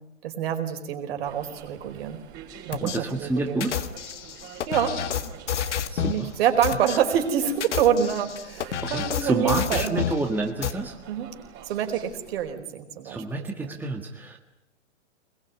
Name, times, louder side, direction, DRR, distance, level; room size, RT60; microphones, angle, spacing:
voice 1, 0.2-2.2 2.7-3.6 4.7-4.9 6.0-10.0 11.1-11.3 11.7-13.2 13.6-13.8, right 8 dB, 55° right, 6 dB, 4.8 m, -26 dB
sound 1, 1.2-12.5, right 8 dB, 30° right, 4.9 m, -46 dB
sound 2, 2.7-3.0 3.6-6.2 6.6-7.0 7.5-10.2 10.6-10.7, left 9 dB, 70° left, 1.8 m, -29 dB
voice 2, 2.8-3.8 5.9-6.3 8.8-11.0 13.0-14.4, right 2 dB, 5° right, 3 dB, 1.7 m, -29 dB
23.5 x 22.0 x 9.6 m, 0.81 s
hypercardioid pair, 135°, 36 cm